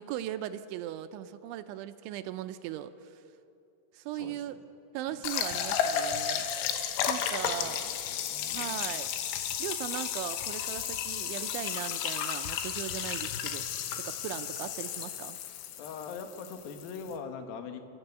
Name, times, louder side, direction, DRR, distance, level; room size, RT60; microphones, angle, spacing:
voice 1, 0.0-3.1 3.9-4.6 4.9-6.8 7.1-8.0 8.5-9.1 9.6-13.7 14.0-15.4, right 12 dB, 80° right, 10 dB, 3.0 m, -38 dB
voice 2, 4.1-4.6 5.1-5.2 6.9-8.9 15.8-17.8, left 5 dB, 65° left, 6 dB, 2.6 m, -43 dB
sound 1, 5.2-17.2, left 9 dB, 80° left, 3.6 m, -33 dB
29.5 x 13.0 x 8.2 m, 2.6 s
omnidirectional pair, 5.6 m